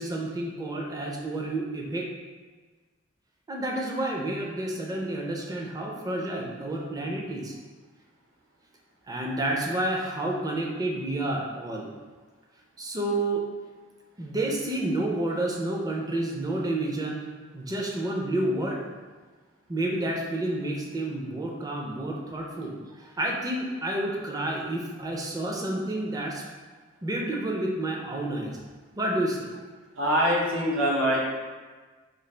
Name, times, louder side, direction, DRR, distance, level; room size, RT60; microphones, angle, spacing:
voice 1, 0.0-2.1 3.5-7.5 9.1-11.9 12.8-13.5 14.2-17.2 17.5-18.9 19.7-26.4 27.0-28.6 29.0-29.5, right 1 dB, 20° right, 0 dB, 0.4 m, -30 dB
voice 2, 30.0-31.2, equal, 70° right, -3 dB, 0.7 m, -23 dB
3.8 x 2.4 x 3.2 m, 1.4 s
head